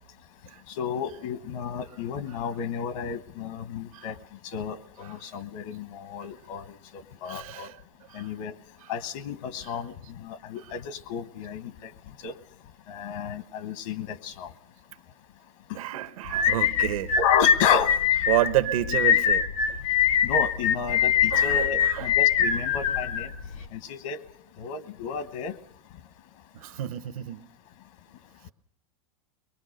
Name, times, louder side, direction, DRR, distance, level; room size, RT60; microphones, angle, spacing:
voice 1, 0.8-4.1 4.5-6.6 6.9-7.7 8.1-8.5 8.9-9.9 10.2-11.9 12.2-12.3 12.9-14.5 17.2-17.9 20.2-23.3 23.7-24.2 24.6-25.5, left 7 dB, 70° left, 1.1 m, -31 dB
voice 2, 7.3-7.7 8.1-8.2 15.7-17.2 18.3-19.4 21.3-22.1 26.5-27.4, right 14 dB, 85° right, 1.1 m, -29 dB
sound 1, 16.3-23.7, left 8 dB, 90° left, 3.0 m, -23 dB
23.0 x 21.0 x 6.5 m
supercardioid pair, 150°, 18 cm